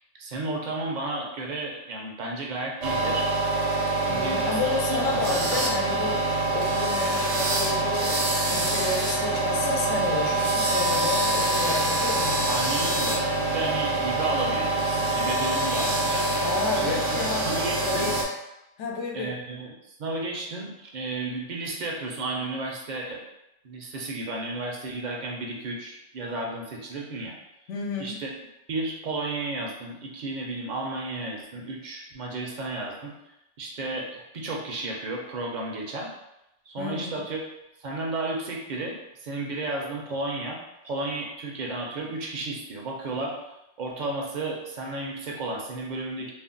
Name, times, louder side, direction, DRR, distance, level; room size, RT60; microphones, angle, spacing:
voice 1, 0.2-3.3 3.9-5.0 5.3-5.6 12.5-16.5 16.7-18.1 19.1-23.2 23.6-27.3 28.0-28.3 28.7-33.1 33.6-36.1 36.7-37.4 37.8-40.6 40.8-43.4 43.8-46.3, right 2 dB, 55° right, -1 dB, 0.5 m, -33 dB
sound 1, 2.8-18.2, right 2 dB, 90° right, 1.0 m, -25 dB
voice 2, 4.1-6.2 6.5-12.5 16.4-18.2 18.8-19.3 27.7-28.2 36.8-37.2, left 3 dB, 85° left, 0 dB, 0.9 m, -31 dB
2.5 x 2.1 x 3.7 m, 0.89 s
omnidirectional pair, 1.2 m